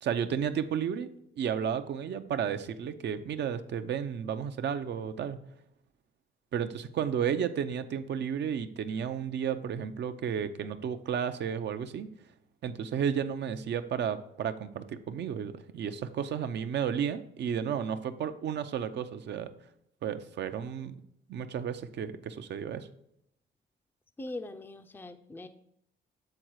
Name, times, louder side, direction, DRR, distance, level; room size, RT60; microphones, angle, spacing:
voice 1, 0.0-1.1 1.4-5.4 6.5-12.1 12.6-19.5 20.0-21.0 21.3-22.9, right 8 dB, 60° right, 10 dB, 0.6 m, -32 dB
voice 2, 24.2-25.5, left 2 dB, 10° left, 9 dB, 0.4 m, -41 dB
7.8 x 3.9 x 4.6 m, 0.75 s
cardioid pair, 90°, 20 cm